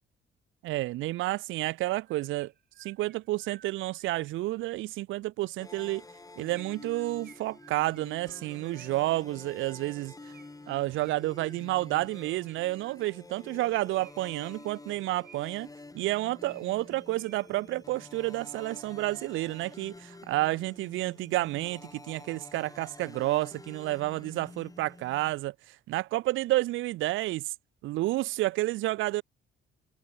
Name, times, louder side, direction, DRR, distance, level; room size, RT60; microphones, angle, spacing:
voice 1, 0.6-2.5 2.8-6.0 6.4-10.3 10.7-15.7 15.9-27.4 27.8-29.2, right 17 dB, 80° right, 0.4 m, -30 dB
Chirp tweet, 2.0-4.4 6.5-9.2 10.3-11.9 12.4-13.3 13.9-15.7 16.2-17.7, right 9 dB, 55° right, 1.6 m, -58 dB
sound 1, 5.6-25.3, left 2 dB, 15° left, 3.2 m, -49 dB
cardioid pair, 90°, 20 cm